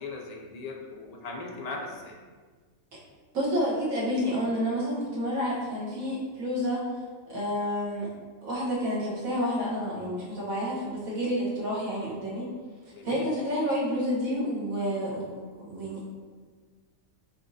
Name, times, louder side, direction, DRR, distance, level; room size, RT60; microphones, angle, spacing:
voice 1, 0.0-2.2 12.9-13.3, left 3 dB, 70° left, 0 dB, 0.3 m, -38 dB
voice 2, 3.3-6.8 7.3-8.1 8.4-12.5 13.0-16.0, equal, 80° right, -6 dB, 1.6 m, -29 dB
5.1 x 3.4 x 2.6 m, 1.5 s
omnidirectional pair, 1.4 m